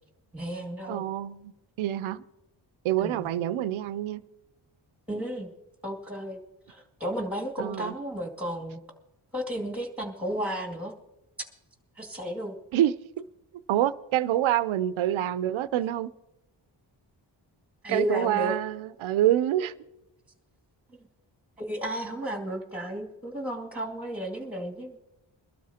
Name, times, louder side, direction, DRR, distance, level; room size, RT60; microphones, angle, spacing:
voice 1, 0.3-1.0 3.0-3.3 5.1-5.5 5.8-6.4 6.7-8.8 9.3-10.9 12.0-12.5 17.8-18.5 21.6-25.0, equal, 5° right, 2.3 m, -33 dB
voice 2, 0.9-1.5 1.8-2.2 2.8-4.2 7.6-7.9 12.7-12.9 13.7-16.1 17.9-19.7, right 12 dB, 85° right, 0.6 m, -26 dB
23.0 x 12.5 x 2.8 m
cardioid pair, 80°, 47 cm